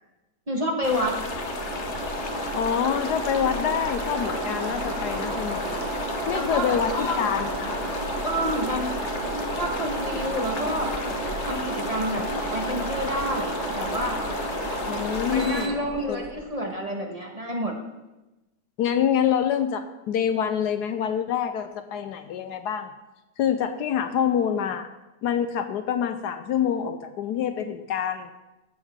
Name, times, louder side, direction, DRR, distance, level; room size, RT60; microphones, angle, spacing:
voice 1, 0.5-1.2 6.3-7.2 8.2-9.0 9.6-10.9 11.4-12.2 12.5-14.2 15.3-17.7, equal, 25° right, -1 dB, 1.3 m, -29 dB
sound 1, 0.8-15.7, left 5 dB, 50° left, 1.0 m, -35 dB
sound 2, 0.9-16.4, right 2 dB, 65° right, 2.1 m, -32 dB
voice 2, 2.5-5.9 6.3-7.8 14.9-15.8 16.1-16.2 18.8-22.9 23.4-24.9 25.2-28.3, left 8 dB, 75° left, 9 dB, 1.1 m, -26 dB
14.0 x 8.1 x 3.6 m, 1.0 s
omnidirectional pair, 1.9 m